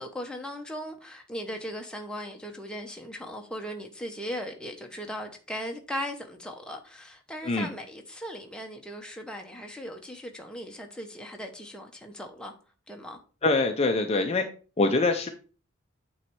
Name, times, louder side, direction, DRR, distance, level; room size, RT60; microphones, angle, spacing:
voice 1, 0.0-12.5 12.9-13.2, equal, 5° left, 0.8 m, -38 dB
voice 2, 13.4-14.5 14.8-15.3, left 3 dB, 30° left, 0.6 m, -24 dB
8.8 x 3.2 x 4.6 m
head